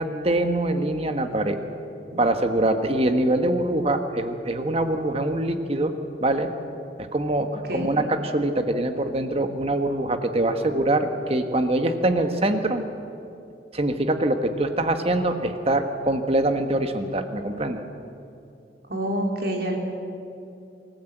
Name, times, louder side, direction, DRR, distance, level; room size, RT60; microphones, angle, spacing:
voice 1, 0.0-1.6 2.2-5.9 6.2-6.5 7.0-12.8 13.7-17.8, right 1 dB, 35° right, 7 dB, 1.4 m, -24 dB
voice 2, 18.9-19.8, right 1 dB, 60° right, 1 dB, 3.1 m, -27 dB
25.0 x 15.0 x 8.0 m, 2.7 s
head